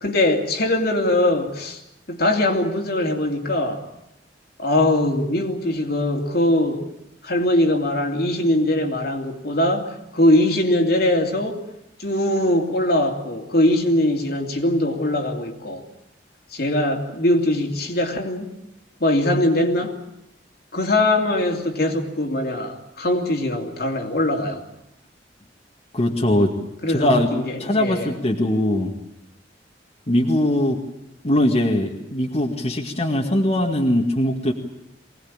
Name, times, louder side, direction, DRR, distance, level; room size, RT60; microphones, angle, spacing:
voice 1, 0.0-1.8 2.1-3.9 4.6-6.9 7.2-11.6 12.0-15.8 16.5-18.5 19.0-20.0 20.7-24.6 26.8-28.1, left 1 dB, 60° left, 2 dB, 2.9 m, -21 dB
voice 2, 25.9-26.5 26.9-27.3 27.6-28.9 30.1-30.8 31.2-34.5, left 1 dB, 35° left, 0 dB, 2.0 m, -21 dB
24.0 x 19.0 x 8.8 m, 0.85 s
head